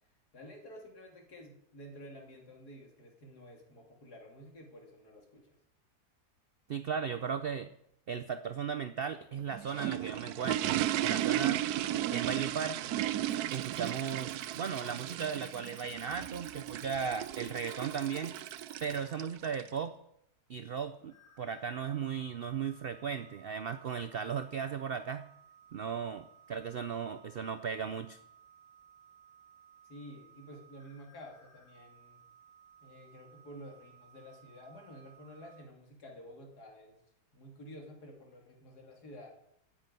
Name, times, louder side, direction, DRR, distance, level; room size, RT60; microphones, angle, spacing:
voice 1, 0.3-5.6 29.8-32.2 32.8-37.0 37.3-39.3, equal, 70° left, 1 dB, 3.2 m, -51 dB
voice 2, 6.7-7.7 8.1-11.6 12.1-12.8 13.5-18.3 18.8-19.9 20.5-25.3 25.7-28.2, right 7 dB, 90° right, 11 dB, 0.5 m, -36 dB
sound 1, 9.4-19.7, right 12 dB, 75° right, 1.1 m, -35 dB
Cricket, 13.3-19.0, right 3 dB, 20° right, 0.7 m, -57 dB
sound 2, 21.1-35.6, right 7 dB, 40° left, 2.4 m, -60 dB
9.7 x 7.5 x 9.2 m, 0.77 s
omnidirectional pair, 1.8 m